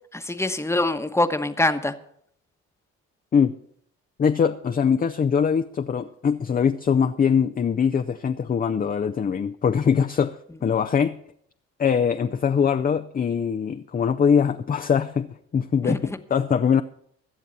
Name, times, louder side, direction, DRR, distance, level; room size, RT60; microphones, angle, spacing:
voice 1, 0.1-1.9 15.8-16.2, left 2 dB, 10° left, 9 dB, 1.1 m, -24 dB
voice 2, 4.2-11.2 11.8-16.8, left 7 dB, 30° left, 7 dB, 0.5 m, -22 dB
21.0 x 7.3 x 4.1 m, 0.66 s
supercardioid pair, 65°, 30 cm